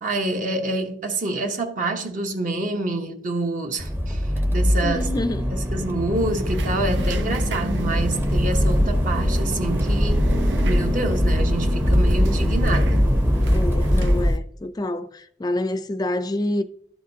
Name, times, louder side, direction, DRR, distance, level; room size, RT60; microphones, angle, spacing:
voice 1, 0.0-4.2 4.5-5.1 5.7-10.3 10.6-13.0, right 2 dB, 50° right, 1.0 m, -27 dB
Accelerating revving vroom, 3.8-14.3, equal, 15° right, 0.7 m, -21 dB
voice 2, 4.8-5.5 13.5-16.6, left 1 dB, 20° left, 0.4 m, -27 dB
sound 1, 6.2-14.4, right 2 dB, 80° right, 0.6 m, -32 dB
12.0 x 5.0 x 2.7 m
head